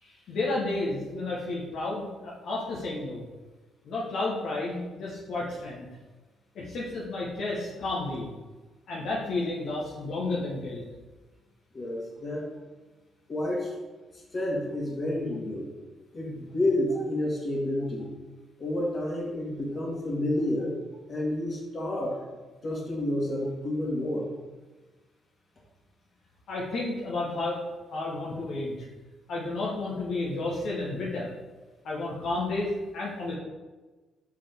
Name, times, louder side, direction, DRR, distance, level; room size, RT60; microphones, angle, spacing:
voice 1, 0.0-3.2 3.8-5.9 6.5-8.3 8.9-10.8 26.5-27.6 27.9-28.9 29.3-31.3 31.8-33.3, left 2 dB, 70° left, -5 dB, 1.1 m, -31 dB
voice 2, 11.7-12.5 13.3-13.7 14.3-15.7 16.1-18.1 18.6-20.7 21.1-22.2 22.6-24.3, left 1 dB, 40° left, -3 dB, 1.9 m, -29 dB
5.8 x 4.8 x 3.6 m, 1.2 s
cardioid pair, 90°, 0 cm